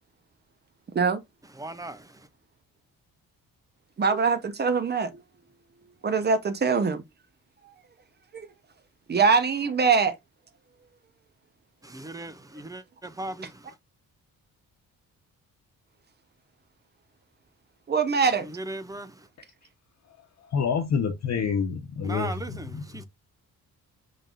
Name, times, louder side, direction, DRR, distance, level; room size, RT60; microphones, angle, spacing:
voice 1, 1.6-2.0 11.9-13.5 18.9-19.1 22.0-22.7 22.9-23.0, right 2 dB, 10° right, 0.4 m, -37 dB
voice 2, 4.0-5.1 6.0-7.0 8.3-8.5 9.1-10.1 13.4-13.5 17.9-18.5, right 5 dB, 30° right, 0.9 m, -23 dB
voice 3, 20.5-22.8, left 6 dB, 50° left, 1.0 m, -27 dB
5.3 x 3.9 x 2.5 m
wide cardioid pair, 160°, 36 cm